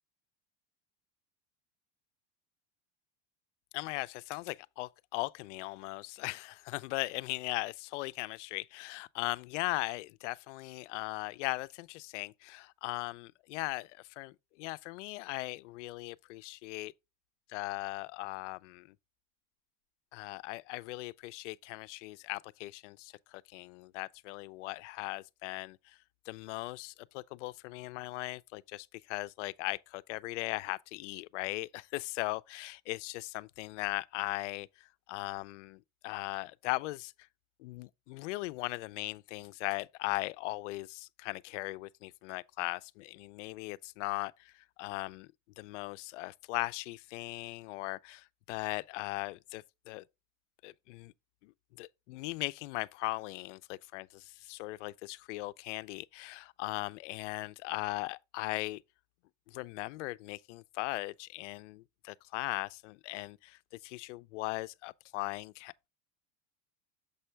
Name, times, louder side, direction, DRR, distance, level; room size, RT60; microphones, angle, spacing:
voice 1, 3.7-16.9 17.5-18.9 20.1-26.0 26.3-37.1 37.6-45.3 45.6-50.0 50.6-51.1 51.4-51.5 51.8-58.8 59.5-65.9, left 21 dB, 90° left, 0.5 m, -39 dB
6.9 x 5.5 x 3.2 m
supercardioid pair, 135°, 35 cm